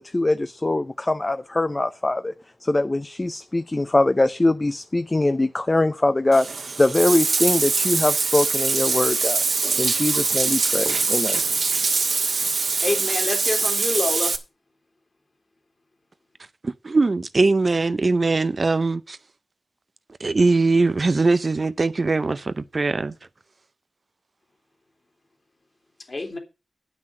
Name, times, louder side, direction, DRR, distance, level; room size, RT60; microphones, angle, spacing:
voice 1, 0.0-2.3 2.6-9.4 9.8-11.4, left 2 dB, 25° left, 0.6 m, -22 dB
Bathtub (filling or washing), 6.3-14.4, right 4 dB, 65° right, 1.6 m, -23 dB
voice 2, 12.8-14.3 26.1-26.4, left 2 dB, 45° left, 2.9 m, -27 dB
voice 3, 16.6-19.2 20.2-23.1, right 3 dB, 45° right, 0.5 m, -21 dB
9.4 x 6.1 x 7.4 m
wide cardioid pair, 80°, 0 cm